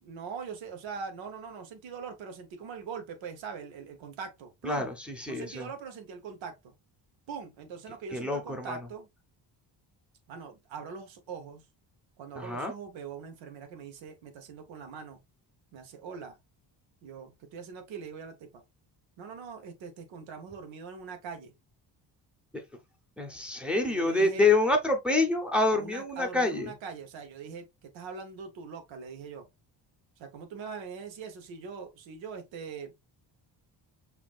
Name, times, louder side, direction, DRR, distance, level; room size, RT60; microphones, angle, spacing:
voice 1, 0.0-4.9 5.3-6.7 7.3-9.1 10.3-11.6 12.2-15.2 15.7-16.4 17.0-18.6 19.2-21.5 23.8-24.5 25.7-29.5 30.2-32.9, right 6 dB, 85° right, 1.0 m, -42 dB
voice 2, 5.2-5.7 8.1-8.8 12.4-12.7 23.2-26.7, left 2 dB, ahead, 0.6 m, -26 dB
5.8 x 2.5 x 2.3 m
cardioid pair, 150°, 45 cm